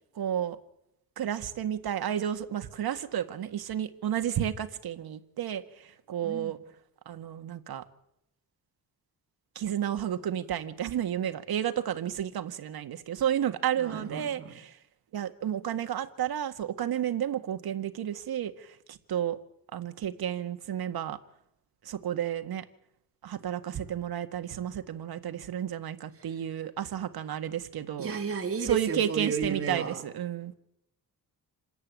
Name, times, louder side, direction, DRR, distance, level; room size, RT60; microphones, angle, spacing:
voice 1, 0.2-0.6 1.2-6.6 7.1-7.8 9.6-14.7 15.1-19.4 19.7-21.2 21.9-22.6 23.2-28.1 28.6-30.5, right 10 dB, 75° right, 8 dB, 1.9 m, -32 dB
voice 2, 6.2-6.6 13.8-14.6 28.0-30.0, right 5 dB, 35° right, 3 dB, 3.3 m, -33 dB
28.0 x 14.0 x 9.5 m, 0.81 s
wide cardioid pair, 165°, 37 cm